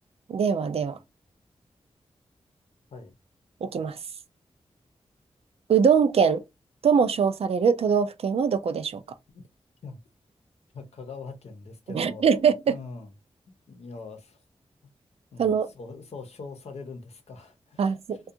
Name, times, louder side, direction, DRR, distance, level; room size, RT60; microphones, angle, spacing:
voice 1, 0.3-1.0 3.6-4.0 5.7-6.4 6.8-9.0 11.9-12.8 15.4-15.7 17.8-18.2, right 6 dB, 65° right, 0.4 m, -22 dB
voice 2, 10.7-12.2 12.7-13.1 13.5-14.4 15.3-18.0, left 4 dB, 75° left, 0.7 m, -42 dB
2.5 x 2.3 x 2.7 m
cardioid pair, 70°, 11 cm